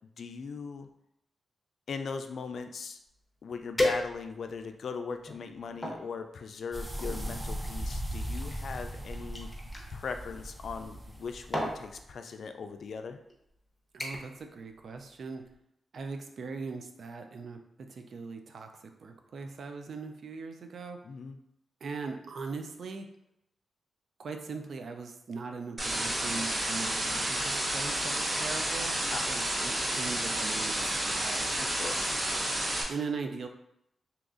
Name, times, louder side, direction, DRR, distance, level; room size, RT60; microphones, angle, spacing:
voice 1, 0.2-0.9 1.9-3.0 3.4-9.5 9.9-13.2 21.0-21.4 29.1-29.3 31.6-32.2, left 5 dB, 70° left, 7 dB, 0.3 m, -39 dB
sound 1, 3.1-3.2 3.8-4.5 5.2-6.0 7.0-9.9 11.0-11.2 11.5-11.8 12.7-12.9 13.3-13.6 14.0-14.4 14.7-15.1 15.4-15.5, left 1 dB, 15° left, 0.9 m, -35 dB
sound 2, 6.7-12.1, right 1 dB, 15° right, 0.5 m, -38 dB
voice 2, 13.9-15.4 15.9-21.0 21.8-23.1 24.2-31.6 32.9-33.5, right 4 dB, 70° right, 5 dB, 0.4 m, -40 dB
sound 3, 25.8-32.8, right 1 dB, 40° right, 0.9 m, -31 dB
2.9 x 2.4 x 3.7 m, 0.79 s
cardioid pair, 55°, 0 cm